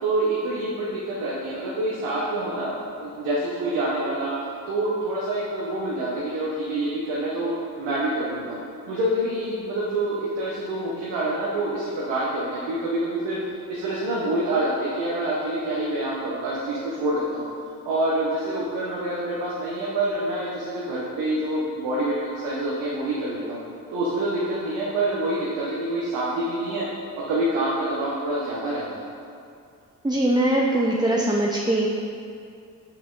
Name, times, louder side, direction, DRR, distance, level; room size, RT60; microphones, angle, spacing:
voice 1, 0.0-2.7 3.0-4.3 4.7-8.6 8.9-13.4 13.7-17.5 17.8-23.6 23.9-26.9 27.2-28.8, right 1 dB, 85° right, -6 dB, 1.0 m, -26 dB
voice 2, 30.0-31.9, right 1 dB, 10° right, -3 dB, 0.7 m, -21 dB
6.1 x 5.7 x 3.8 m, 2.4 s
supercardioid pair, 40°, 43 cm